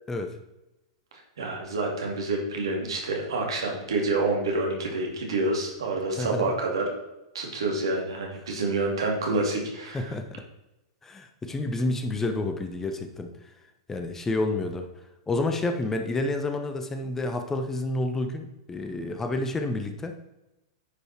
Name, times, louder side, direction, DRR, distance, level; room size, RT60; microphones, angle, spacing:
voice 1, 1.4-6.8 7.3-10.1, right 2 dB, 75° right, 0 dB, 2.6 m, -28 dB
voice 2, 9.9-10.3 11.0-13.5 13.9-14.9 15.3-20.1, left 2 dB, 15° left, 6 dB, 1.0 m, -29 dB
9.8 x 5.6 x 4.4 m, 0.96 s
hypercardioid pair, 100°, 3 cm